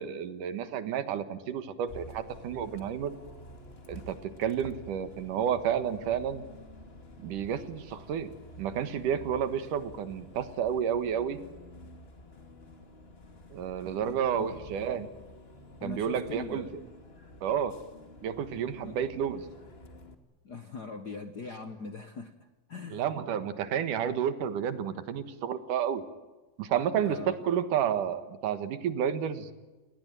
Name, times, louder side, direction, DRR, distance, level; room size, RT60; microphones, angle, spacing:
voice 1, 0.0-3.1 3.9-6.4 7.2-8.3 8.6-11.4 13.5-15.1 15.8-16.9 17.4-17.7 18.2-19.5 22.9-26.0 26.6-29.5, right 8 dB, 80° right, 11 dB, 3.0 m, -31 dB
Bus, 1.9-20.1, left 1 dB, 25° left, 1.7 m, -50 dB
voice 2, 14.0-14.5 15.8-16.7 18.8-19.0 20.4-23.1 26.9-27.5, left 4 dB, 75° left, 9 dB, 0.9 m, -41 dB
29.0 x 19.0 x 9.2 m, 1.2 s
omnidirectional pair, 3.6 m